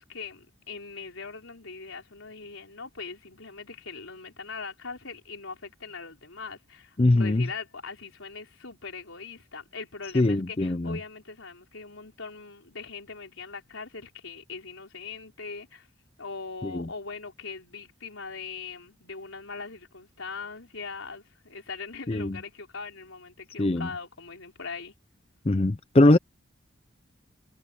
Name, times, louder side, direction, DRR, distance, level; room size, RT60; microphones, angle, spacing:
voice 1, 0.0-15.9 16.2-24.9, left 4 dB, 80° left, 4.4 m, -41 dB
voice 2, 7.0-7.5 10.1-11.0 16.6-16.9 22.1-22.4 23.6-23.9 25.5-26.2, left 2 dB, 30° left, 0.5 m, -22 dB
head